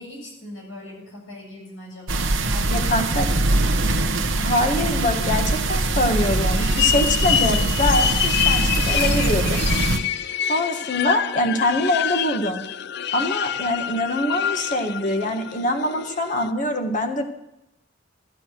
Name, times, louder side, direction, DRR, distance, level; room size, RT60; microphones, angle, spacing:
voice 1, 0.0-2.9 3.4-4.0, left 1 dB, 80° left, -2 dB, 7.4 m, -40 dB
sound 1, 2.1-10.0, right 2 dB, 90° right, 1.1 m, -22 dB
voice 2, 2.7-3.3 4.4-9.6 10.5-12.6 13.1-17.2, left 1 dB, 40° left, 4 dB, 1.7 m, -24 dB
sound 2, 4.9-16.5, left 10 dB, 60° left, 0.5 m, -27 dB
13.5 x 12.5 x 6.2 m, 0.84 s
head